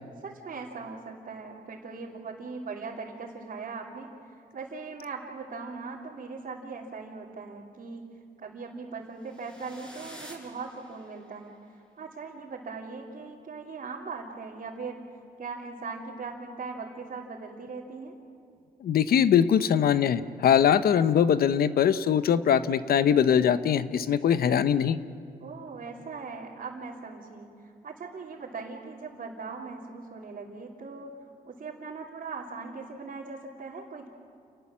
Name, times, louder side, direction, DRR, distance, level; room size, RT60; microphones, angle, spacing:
voice 1, 0.2-11.5 12.0-15.0 15.4-18.1 25.4-31.1 31.4-34.1, right 4 dB, 60° right, -4 dB, 3.2 m, -40 dB
sound 1, 9.2-11.4, equal, 5° left, 7.6 m, -49 dB
voice 2, 18.8-25.0, left 8 dB, 80° left, 13 dB, 0.9 m, -22 dB
29.5 x 18.5 x 7.5 m, 2.5 s
cardioid pair, 70°, 16 cm